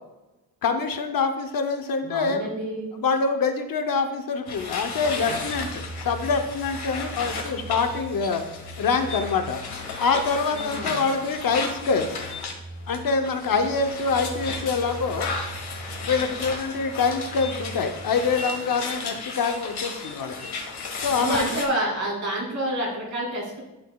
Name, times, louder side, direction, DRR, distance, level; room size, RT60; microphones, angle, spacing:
voice 1, 0.6-2.5 2.9-8.4 8.8-9.6 10.0-12.1 12.9-15.3 16.0-20.3 21.0-21.5, left 4 dB, 60° left, 6 dB, 0.8 m, -25 dB
voice 2, 2.0-2.9 10.5-11.0 21.1-23.6, right 1 dB, 50° right, -4 dB, 2.7 m, -28 dB
sound 1, 4.5-12.6 12.9-21.7, left 4 dB, 90° left, 1.3 m, -34 dB
sound 2, 4.9-18.3, right 1 dB, 20° right, 2.5 m, -41 dB
11.0 x 6.0 x 2.3 m, 1.0 s
wide cardioid pair, 170°, 38 cm